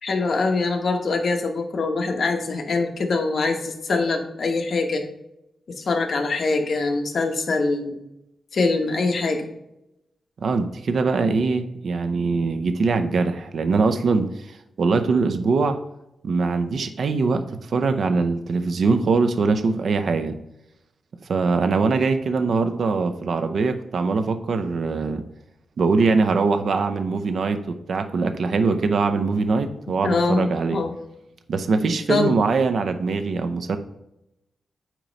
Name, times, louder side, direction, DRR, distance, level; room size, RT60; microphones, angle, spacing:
voice 1, 0.0-5.0 5.8-8.0 8.5-9.5 30.0-30.9 32.1-32.3, left 3 dB, 60° left, 4 dB, 1.1 m, -23 dB
voice 2, 10.4-14.3 14.8-15.8 16.2-20.4 21.3-25.2 25.8-30.8 31.5-33.8, right 4 dB, 65° right, 8 dB, 0.6 m, -22 dB
9.0 x 3.0 x 5.3 m, 0.86 s
cardioid pair, 100°, 0 cm